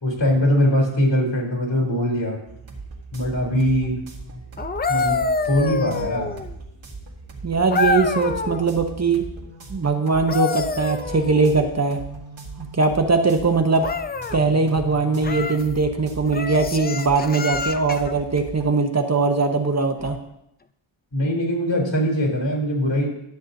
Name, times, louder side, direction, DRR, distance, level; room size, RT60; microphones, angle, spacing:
voice 1, 0.0-2.4 3.1-4.0 4.9-5.2 5.5-6.3 21.1-23.1, equal, 65° left, -2 dB, 3.3 m, -21 dB
sound 1, 2.5-18.7, right 2 dB, 75° right, 1.9 m, -39 dB
sound 2, 4.6-6.6 7.7-8.7 10.1-11.7 13.8-14.4 15.2-15.7 16.3-18.1 20.0-20.2, left 4 dB, 25° left, 0.3 m, -26 dB
voice 2, 7.4-9.2 9.7-12.0 12.7-13.9 14.3-20.2, right 4 dB, 35° right, 5 dB, 0.8 m, -20 dB
13.0 x 8.2 x 2.6 m, 0.79 s
wide cardioid pair, 110°, 47 cm